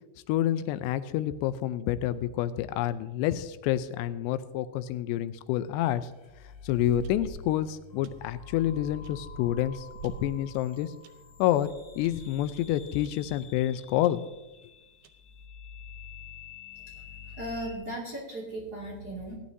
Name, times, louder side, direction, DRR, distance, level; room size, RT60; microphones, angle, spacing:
voice 1, 0.3-6.1 6.6-10.9 11.4-11.7 12.0-14.2, left 12 dB, 85° left, 13 dB, 2.7 m, -28 dB
sound 1, 6.1-17.8, left 6 dB, 65° left, 4.4 m, -48 dB
sound 2, 6.1-7.6 8.0-8.3 9.0-11.1 11.6-11.7 12.0-12.3 13.0-13.2 13.4-13.5 14.0-14.1 14.9-15.4, right 5 dB, 80° right, 2.1 m, -45 dB
voice 2, 17.4-19.4, right 1 dB, 30° right, -3 dB, 2.3 m, -36 dB
18.0 x 11.5 x 2.7 m, 1.1 s
omnidirectional pair, 4.8 m